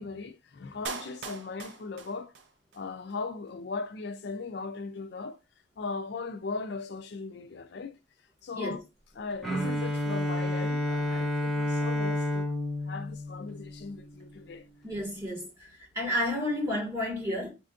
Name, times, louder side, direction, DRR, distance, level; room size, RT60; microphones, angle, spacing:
voice 1, 0.0-2.3 2.7-5.4 5.8-7.9 8.4-8.8 9.2-12.5 12.9-14.7, left 4 dB, 55° left, 0.4 m, -38 dB
Clapping, 0.9-2.8 3.1-3.2, right 5 dB, 60° right, 0.5 m, -41 dB
Bowed string instrument, 9.4-14.3, left 1 dB, ahead, 0.8 m, -30 dB
voice 2, 14.8-17.5, left 1 dB, 15° right, 1.5 m, -31 dB
4.3 x 2.5 x 2.4 m
head